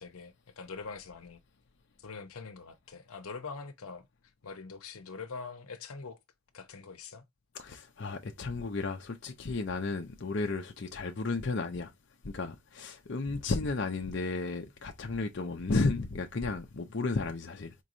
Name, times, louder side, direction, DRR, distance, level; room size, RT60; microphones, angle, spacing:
voice 1, 0.0-1.4 2.0-4.1 4.4-6.2 6.5-7.2, left 4 dB, 85° left, 0.8 m, -43 dB
voice 2, 7.5-11.9 12.2-17.7, left 3 dB, 55° left, 0.6 m, -33 dB
4.5 x 3.1 x 2.5 m
head